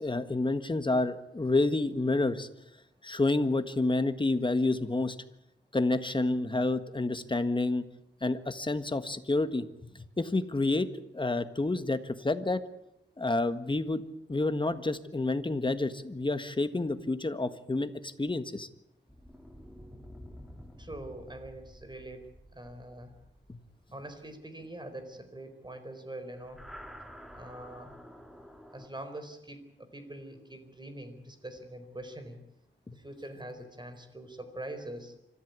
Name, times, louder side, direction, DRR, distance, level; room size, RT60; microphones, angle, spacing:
voice 1, 0.0-2.5 3.0-5.2 5.7-7.8 8.2-9.7 10.2-12.6 13.2-14.0 14.3-18.7 23.5-23.6 32.9-33.0, left 2 dB, 25° left, 10 dB, 1.6 m, -29 dB
sound 1, 19.1-24.7 26.3-28.9, equal, ahead, 2.7 m, -50 dB
voice 2, 20.8-23.1 23.9-26.6 27.3-27.9 28.7-32.4 32.9-35.1, right 1 dB, 20° right, 8 dB, 4.4 m, -44 dB
25.5 x 14.5 x 9.5 m, 0.83 s
wide cardioid pair, 90°, 20 cm